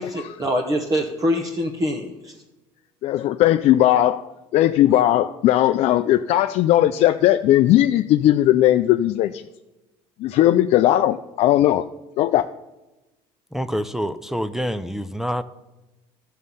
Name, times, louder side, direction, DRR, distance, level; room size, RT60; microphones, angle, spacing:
voice 1, 0.0-2.3, equal, 30° right, 1.0 m, -24 dB
voice 2, 3.0-9.4 10.2-11.9 12.2-12.5, left 13 dB, 55° left, 0.4 m, -18 dB
voice 3, 13.5-15.4, equal, 5° right, 0.4 m, -26 dB
12.5 x 6.4 x 5.5 m
cardioid pair, 115°, 13 cm